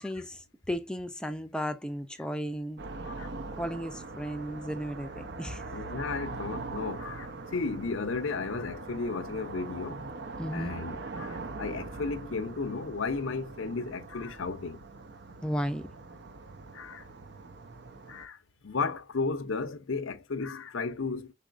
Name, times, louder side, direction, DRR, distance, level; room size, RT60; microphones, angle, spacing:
voice 1, 0.0-2.8 3.5-5.6 10.4-10.8 15.4-15.9, equal, 5° left, 0.5 m, -34 dB
sound 1, 2.8-18.3, right 3 dB, 55° right, 0.7 m, -42 dB
voice 2, 5.7-10.0 10.5-14.8 16.7-17.1 17.9-18.4 18.6-21.3, left 4 dB, 75° left, 0.7 m, -34 dB
4.8 x 4.1 x 2.5 m
head